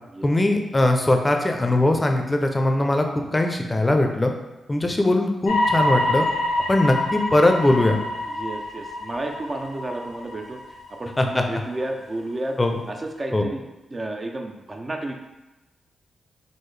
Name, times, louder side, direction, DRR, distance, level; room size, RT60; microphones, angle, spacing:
voice 1, 0.2-4.3 4.7-6.3 6.7-8.0 11.2-11.4 12.6-12.8 13.3-13.5, left 1 dB, 25° left, 4 dB, 0.5 m, -20 dB
sound 1, 5.4-11.3 11.8-11.9, left 1 dB, 75° left, 0.5 m, -26 dB
voice 2, 8.2-10.6 10.9-12.6 12.9-13.6 13.9-15.1, right 2 dB, 35° right, 2 dB, 0.4 m, -31 dB
3.6 x 2.0 x 3.2 m, 1.0 s
supercardioid pair, 50°, 0 cm